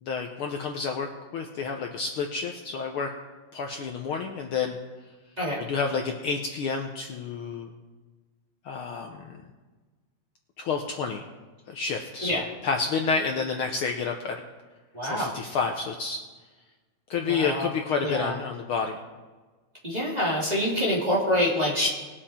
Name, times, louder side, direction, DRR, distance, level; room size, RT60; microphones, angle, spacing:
voice 1, 0.0-3.1 3.5-4.8 5.6-7.7 8.6-9.4 10.6-11.2 11.7-14.4 15.0-16.2 17.1-19.0, left 5 dB, 75° left, 3 dB, 1.2 m, -29 dB
voice 2, 14.9-15.3 17.2-17.7 18.0-18.3 19.8-21.9, left 1 dB, 15° right, -5 dB, 2.2 m, -26 dB
19.5 x 7.6 x 4.3 m, 1.3 s
omnidirectional pair, 3.4 m